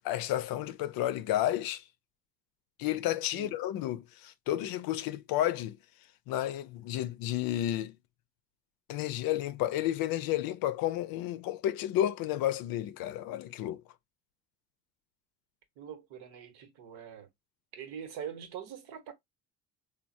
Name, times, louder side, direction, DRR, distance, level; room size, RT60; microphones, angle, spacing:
voice 1, 0.0-1.8 2.8-5.8 6.3-8.0 8.9-13.8, left 13 dB, 60° left, 0.5 m, -31 dB
voice 2, 15.8-17.3 17.7-19.1, right 8 dB, 70° right, 1.0 m, -43 dB
3.4 x 2.0 x 2.5 m
supercardioid pair, 75°, 40 cm